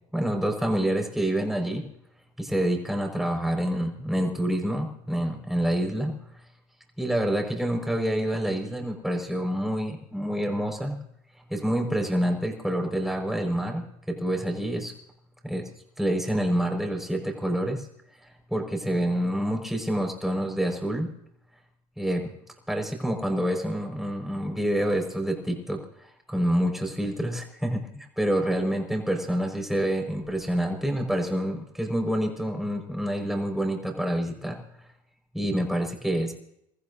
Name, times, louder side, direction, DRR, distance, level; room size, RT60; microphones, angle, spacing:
voice 1, 0.1-1.8 2.4-6.1 7.0-11.0 11.5-14.9 15.4-15.6 16.0-17.9 18.2-21.1 22.0-22.3 22.7-34.6 35.3-36.3, right 1 dB, ahead, 3 dB, 5.2 m, -27 dB
29.0 x 14.5 x 2.8 m, 0.76 s
supercardioid pair, 95°, 18 cm